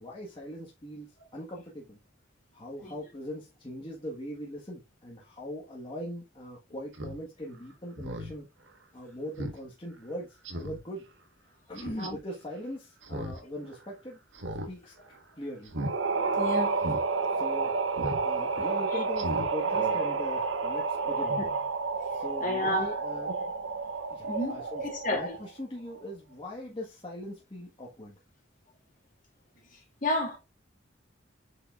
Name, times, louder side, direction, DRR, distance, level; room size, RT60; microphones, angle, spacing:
voice 1, 0.0-2.0 2.5-8.5 8.9-11.0 11.7-14.2 14.7-14.9 15.4-15.7 17.3-17.7 18.2-21.4 22.1-23.3 24.1-24.8 25.1-28.2, equal, 25° left, 1.5 m, -40 dB
Speech synthesizer, 6.9-7.2 7.5-7.6 8.0-8.3 8.7-8.8 9.4-9.6 9.9-10.0 10.4-10.8 11.8-12.1 13.0-13.4 13.7-13.8 14.3-14.7 15.0-15.2 15.7-15.9 16.3-16.4 16.8-17.0 18.0-18.2 18.6-18.7 19.1-19.5 19.8-19.9, equal, 70° right, 1.4 m, -36 dB
sound 1, 15.8-25.5, right 4 dB, 90° right, 0.8 m, -30 dB
voice 2, 16.4-16.9 18.6-18.7 18.9-19.0 21.4-21.5 22.4-23.0 24.2-25.4 30.0-30.4, left 1 dB, 40° left, 2.8 m, -31 dB
8.4 x 5.3 x 2.5 m
head